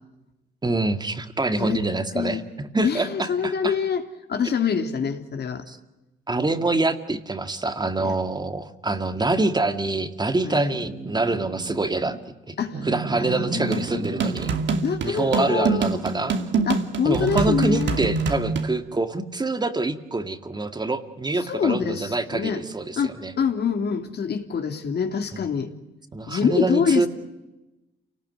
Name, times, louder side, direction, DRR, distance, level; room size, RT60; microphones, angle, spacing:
voice 1, 0.6-3.7 5.7-5.8 6.3-12.2 12.5-12.6 12.8-14.5 15.0-16.4 17.1-23.3 25.3-25.4 26.1-27.1, right 2 dB, 20° right, 8 dB, 2.1 m, -25 dB
voice 2, 2.1-2.5 2.8-4.0 4.3-5.6 8.0-8.1 9.2-9.5 10.4-10.8 12.6-12.8 13.2-14.3 14.8-16.0 16.6-18.0 21.5-22.6 23.0-25.7 26.3-27.1, left 6 dB, 55° left, 6 dB, 3.1 m, -26 dB
sound 1, 10.7-12.2 12.7-14.8 15.2-16.6, right 4 dB, 50° right, 2.9 m, -35 dB
sound 2, 13.7-18.7, right 4 dB, 65° right, 2.6 m, -25 dB
28.5 x 19.0 x 9.5 m, 1.0 s
cardioid pair, 90°, 20 cm